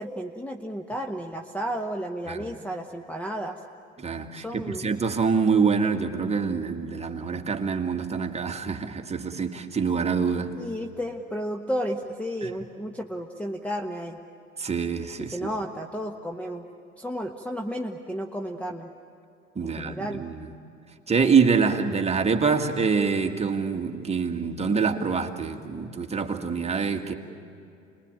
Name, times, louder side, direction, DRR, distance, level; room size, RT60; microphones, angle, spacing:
voice 1, 0.0-3.6 4.3-4.9 10.6-14.2 15.3-16.6 17.0-18.9 19.6-20.2, equal, 5° left, 3 dB, 1.2 m, -32 dB
voice 2, 4.0-10.5 12.4-12.5 14.6-15.4 19.6-20.5 21.1-27.1, right 5 dB, 15° right, 4 dB, 1.9 m, -25 dB
29.5 x 21.0 x 8.9 m, 2.7 s
figure-of-eight pair, 70°, 38 cm